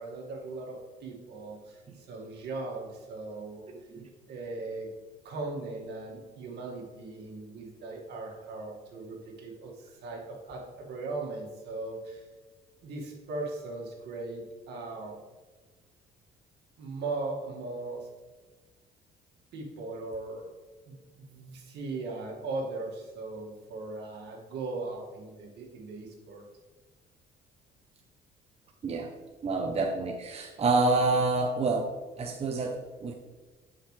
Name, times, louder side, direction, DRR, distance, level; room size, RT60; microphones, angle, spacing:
voice 1, 0.0-3.7 4.3-4.9 5.2-12.2 12.8-15.2 16.8-18.1 19.5-20.5 20.9-26.4, right 3 dB, 75° right, 0 dB, 2.3 m, -38 dB
voice 2, 29.4-31.9 32.2-33.1, right 3 dB, 35° right, 3 dB, 0.8 m, -27 dB
11.0 x 5.9 x 3.4 m, 1.3 s
cardioid pair, 95°, 17 cm